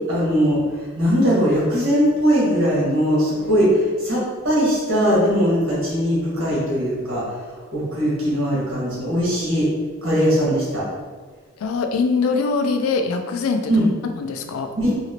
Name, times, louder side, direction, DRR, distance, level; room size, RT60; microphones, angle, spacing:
voice 1, 0.1-0.6 1.0-7.2 7.7-9.7 10.0-10.8 13.7-13.8 14.8-14.9, equal, 65° right, -7 dB, 1.4 m, -20 dB
voice 2, 11.6-13.9 14.1-14.7, left 4 dB, 85° left, 6 dB, 0.3 m, -23 dB
2.9 x 2.8 x 2.8 m, 1.5 s
head